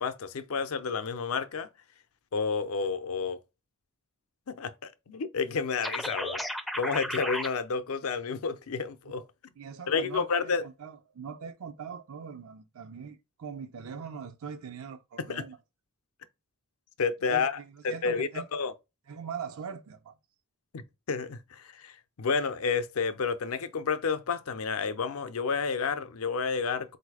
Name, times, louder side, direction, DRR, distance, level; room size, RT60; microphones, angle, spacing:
voice 1, 0.0-1.7 2.3-3.4 4.5-6.4 6.7-9.2 9.9-10.6 15.2-15.4 17.0-17.6 17.8-18.7 20.7-27.0, left 5 dB, 70° left, 0.5 m, -30 dB
sound 1, 5.8-7.5, equal, ahead, 0.4 m, -33 dB
voice 2, 9.6-10.5 10.8-15.6 17.3-18.5 19.1-20.1, right 6 dB, 70° right, 0.5 m, -41 dB
4.0 x 2.6 x 4.7 m
head